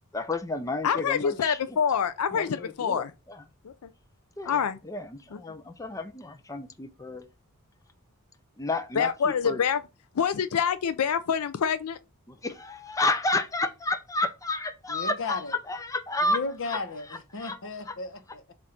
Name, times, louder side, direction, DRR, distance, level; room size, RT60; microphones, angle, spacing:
voice 1, 0.1-1.6 2.3-3.0 4.4-7.2 8.6-9.6 12.3-15.4 15.7-16.4 16.7-16.8 17.4-17.6, left 2 dB, 15° left, 0.6 m, -31 dB
voice 2, 0.8-3.1 3.6-3.9 4.4-4.8 5.3-5.4 9.0-9.8 10.1-12.0, left 7 dB, 75° left, 0.4 m, -26 dB
voice 3, 14.9-15.6 16.2-18.5, left 3 dB, 60° left, 0.9 m, -35 dB
7.5 x 2.6 x 5.8 m
head